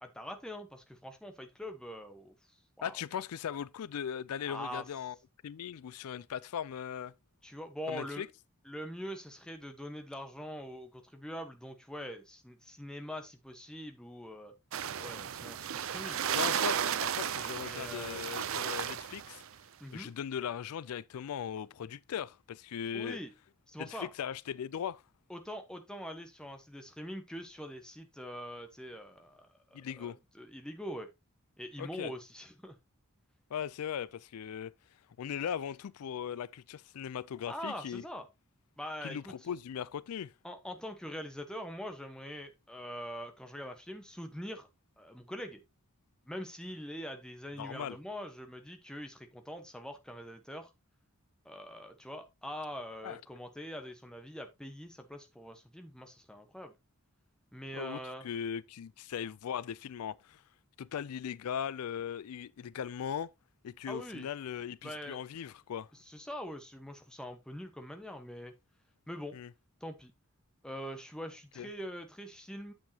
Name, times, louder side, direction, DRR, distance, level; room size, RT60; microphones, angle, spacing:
voice 1, 0.0-2.3 2.8-3.0 4.4-4.8 7.4-8.2 8.6-14.5 15.0-16.3 17.6-18.2 19.8-20.1 22.9-23.3 23.7-24.1 25.3-31.1 31.6-32.8 37.5-38.3 38.8-39.3 40.4-44.7 45.0-45.6 46.2-50.7 51.4-56.7 57.5-58.3 63.9-64.3 64.8-65.2 65.9-68.5 69.1-69.4 69.8-70.1 70.6-72.7, equal, 5° left, 1.1 m, -43 dB
voice 2, 2.8-5.2 5.4-7.1 7.9-8.3 16.3-19.4 19.9-23.2 23.8-25.0 29.7-30.2 31.8-32.1 33.5-34.7 35.2-38.0 39.0-40.3 47.6-48.0 53.0-53.2 57.7-60.4 60.8-63.3 63.6-65.9 69.3-69.5 71.6-71.7, left 8 dB, 85° left, 0.4 m, -39 dB
sound 1, 14.7-19.4, right 9 dB, 65° right, 0.5 m, -34 dB
8.9 x 7.4 x 2.8 m
head